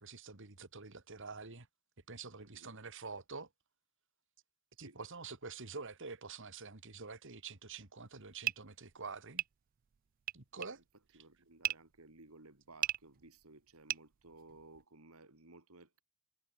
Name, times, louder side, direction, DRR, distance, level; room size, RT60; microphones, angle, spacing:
voice 1, 0.0-1.7 2.1-3.5 4.8-9.4 10.3-10.8, right 4 dB, 60° right, 2.3 m, -47 dB
voice 2, 2.4-2.8 4.8-5.0 10.8-10.9 11.1-16.0, right 2 dB, 85° right, 3.5 m, -58 dB
sound 1, 8.1-14.8, right 12 dB, 40° right, 0.3 m, -40 dB
head